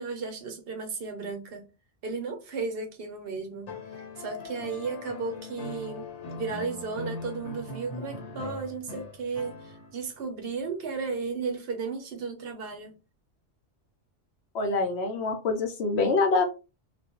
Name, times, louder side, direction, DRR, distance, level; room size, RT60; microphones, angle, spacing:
voice 1, 0.0-1.6 2.0-6.1 6.3-12.9, right 4 dB, 65° right, 0.8 m, -34 dB
sound 1, 3.6-10.1 11.6-11.7, left 2 dB, 85° left, 1.3 m, -40 dB
voice 2, 14.5-16.5, left 3 dB, 70° left, 0.9 m, -25 dB
2.4 x 2.2 x 2.8 m
omnidirectional pair, 1.2 m